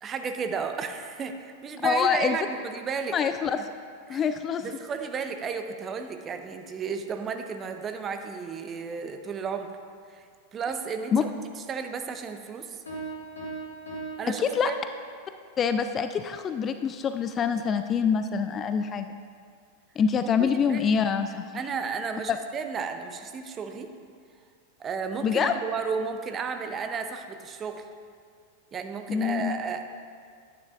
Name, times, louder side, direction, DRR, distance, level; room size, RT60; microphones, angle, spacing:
voice 1, 0.0-3.2 4.1-4.2 4.6-9.7 10.1-11.3 11.7-12.8 14.2-14.7 20.4-20.8 21.5-23.9 24.8-27.9 28.7-29.8, right 5 dB, 25° right, 7 dB, 0.6 m, -33 dB
voice 2, 1.8-2.4 3.1-3.6 4.1-4.7 11.1-11.2 14.4-14.7 15.6-19.1 20.0-21.4 22.3-22.4 25.2-25.5 29.1-29.6, left 6 dB, 25° left, 9 dB, 0.3 m, -25 dB
Piano, 12.9-15.2, right 3 dB, 75° left, 1.9 m, -39 dB
9.9 x 9.4 x 2.4 m, 2.1 s
figure-of-eight pair, 90°, 0 cm